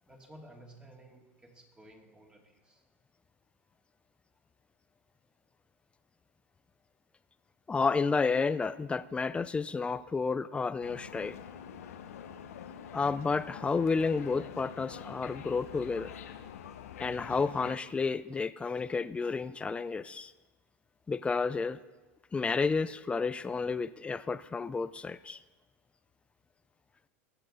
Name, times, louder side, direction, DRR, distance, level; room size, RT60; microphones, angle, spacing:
voice 1, 0.0-2.8, right 1 dB, 10° right, 1 dB, 2.5 m, -54 dB
voice 2, 7.7-11.4 12.9-16.1 17.0-20.3 21.1-21.8 22.3-25.4, left 4 dB, 15° left, 15 dB, 0.5 m, -31 dB
sound 1, 10.8-17.8, left 9 dB, 85° left, 1.0 m, -46 dB
22.0 x 7.9 x 3.9 m, 1.2 s
hypercardioid pair, 110°, 8 cm